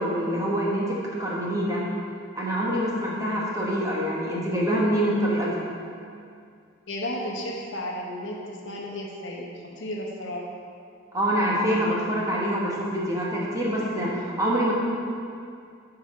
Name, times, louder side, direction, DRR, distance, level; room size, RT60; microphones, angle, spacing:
voice 1, 0.0-1.8 2.3-5.6 11.1-14.7, equal, 15° right, -5 dB, 1.2 m, -25 dB
voice 2, 6.9-9.5 9.8-10.4, left 1 dB, 60° left, -1 dB, 1.0 m, -33 dB
9.8 x 4.9 x 4.3 m, 2.4 s
head